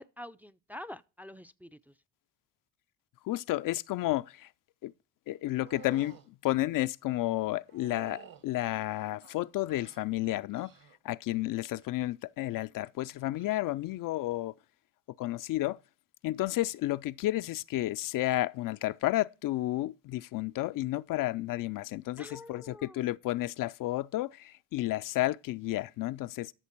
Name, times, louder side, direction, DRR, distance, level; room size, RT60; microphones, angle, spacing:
voice 1, 0.0-1.9 22.2-23.2, left 1 dB, 5° right, 0.5 m, -47 dB
voice 2, 3.3-4.5 4.8-4.9 5.3-6.2 6.4-10.7 11.0-14.5 15.2-15.8 16.2-26.5, left 16 dB, 55° left, 0.4 m, -31 dB
sound 1, 5.6-6.3 7.7-8.5 9.2-10.0 10.5-11.0 11.3-11.8 13.3-13.5, right 9 dB, 55° right, 1.7 m, -51 dB
13.0 x 6.5 x 4.5 m
hypercardioid pair, 60°, 40 cm